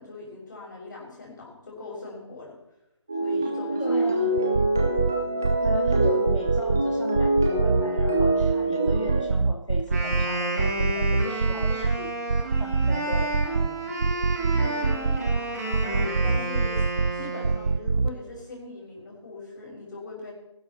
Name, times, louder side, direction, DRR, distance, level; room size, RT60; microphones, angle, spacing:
voice 1, 0.0-2.6 3.2-4.1 11.2-11.9 14.1-16.9 17.1-20.3, left 3 dB, 40° left, -2 dB, 5.7 m, -41 dB
sound 1, 3.1-9.3, right 2 dB, 5° right, 0.4 m, -25 dB
voice 2, 3.8-4.3 5.6-12.1 12.6-14.2, left 2 dB, 75° left, 1 dB, 2.7 m, -36 dB
sound 2, 4.4-5.1 5.4-6.8 7.1-8.5 8.9-10.2 10.6-12.0 12.3-13.7 14.0-15.4 15.7-17.1 17.4-18.1, right 4 dB, 50° right, 0.6 m, -24 dB
Wind instrument woodwind instrument, 9.8-17.8, right 2 dB, 30° right, 5.5 m, -31 dB
21.0 x 12.0 x 4.3 m, 0.87 s
figure-of-eight pair, 165°, 16 cm